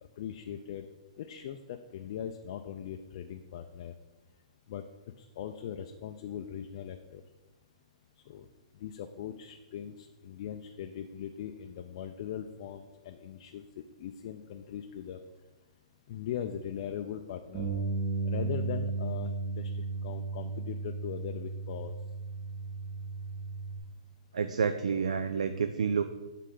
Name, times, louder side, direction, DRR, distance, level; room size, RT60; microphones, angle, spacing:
voice 1, 0.2-0.9 1.2-3.9 4.7-4.8 5.2-7.2 8.3-8.5 8.8-15.2 16.1-17.7 18.3-21.9, left 9 dB, 55° left, 6 dB, 0.4 m, -40 dB
Bass guitar, 17.5-23.8, right 3 dB, 35° right, 1.6 m, -35 dB
voice 2, 24.3-26.0, right 6 dB, 80° right, 10 dB, 0.3 m, -29 dB
8.4 x 3.6 x 3.8 m, 1.1 s
hypercardioid pair, 130°, 4 cm